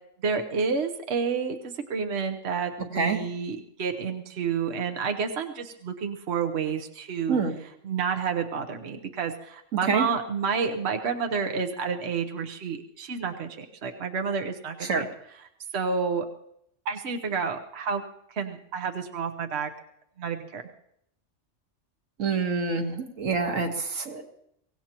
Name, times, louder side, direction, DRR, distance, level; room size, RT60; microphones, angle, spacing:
voice 1, 0.2-7.4 7.8-15.1 15.7-16.3 16.8-18.0 18.3-19.7 20.2-20.6, right 5 dB, 60° right, 4 dB, 1.2 m, -29 dB
voice 2, 22.2-24.2, right 4 dB, 85° right, 4 dB, 1.9 m, -26 dB
24.0 x 17.0 x 3.0 m, 0.73 s
omnidirectional pair, 1.3 m